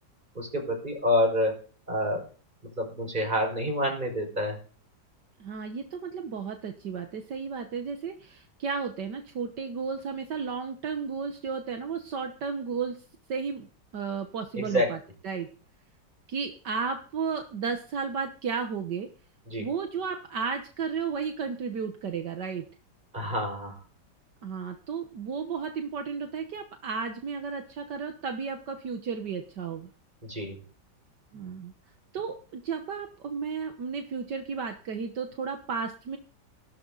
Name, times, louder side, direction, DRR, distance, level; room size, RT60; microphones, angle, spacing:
voice 1, 0.3-1.6 1.9-2.3 2.6-4.6 14.6-14.9 19.5-19.7 23.1-23.8 30.2-30.6, left 1 dB, 25° right, 2 dB, 5.8 m, -28 dB
voice 2, 5.4-13.0 13.3-13.7 13.9-15.0 15.2-15.5 16.3-19.1 19.6-22.6 24.4-29.9 31.3-31.7 32.1-36.2, right 5 dB, 70° right, 5 dB, 1.8 m, -33 dB
16.5 x 12.0 x 4.0 m, 0.39 s
omnidirectional pair, 1.9 m